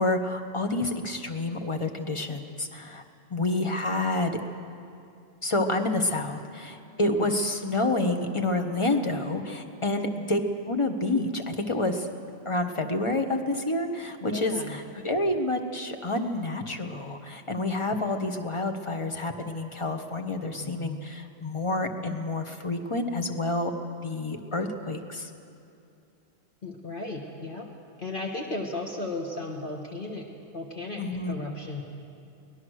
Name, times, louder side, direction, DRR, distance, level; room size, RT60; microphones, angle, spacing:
voice 1, 0.0-3.0 3.3-4.4 5.4-10.4 10.7-12.1 12.4-23.7 24.0-25.3 31.0-31.3, left 2 dB, 25° left, 5 dB, 1.3 m, -28 dB
voice 2, 14.2-14.8 20.5-21.0 26.6-27.7 28.0-30.3 30.5-31.8, left 2 dB, 45° left, -1 dB, 1.6 m, -35 dB
23.5 x 18.5 x 6.5 m, 2.7 s
omnidirectional pair, 1.3 m